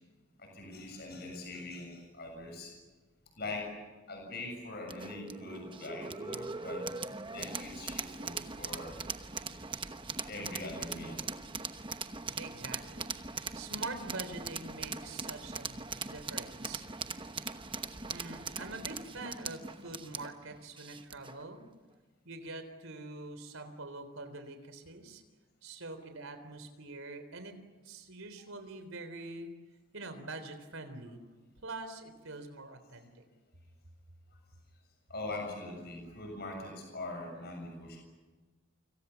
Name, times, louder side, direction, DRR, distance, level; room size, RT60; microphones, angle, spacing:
voice 1, 0.4-2.7 3.4-3.7 4.1-7.0 7.3-9.0 10.2-11.4 35.1-38.0, left 2 dB, 50° left, 2 dB, 6.9 m, -42 dB
sound 1, 4.9-21.4, right 4 dB, 25° right, 1.0 m, -41 dB
voice 2, 12.4-13.1 13.5-16.8 18.1-21.6 22.2-25.2 25.6-27.6 27.8-29.5 29.9-31.2 31.6-33.3, right 2 dB, 75° right, 8 dB, 3.8 m, -44 dB
29.0 x 26.5 x 7.1 m, 1.3 s
head